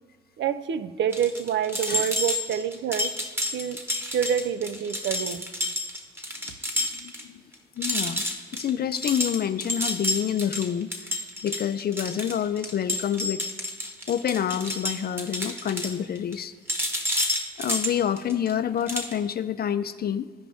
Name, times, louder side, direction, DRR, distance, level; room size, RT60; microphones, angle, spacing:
voice 1, 0.4-3.1 3.5-5.4, right 8 dB, 70° right, 12 dB, 0.5 m, -27 dB
sound 1, 1.1-7.2 7.5-7.6 7.8-16.4 16.7-18.5 18.9-19.1, left 1 dB, 10° right, 1.1 m, -29 dB
voice 2, 6.8-7.4 7.8-8.3 8.5-13.4 14.1-16.5 17.6-20.3, left 9 dB, 50° left, 11 dB, 0.4 m, -28 dB
14.5 x 5.0 x 3.4 m, 1.4 s
supercardioid pair, 60°, 20 cm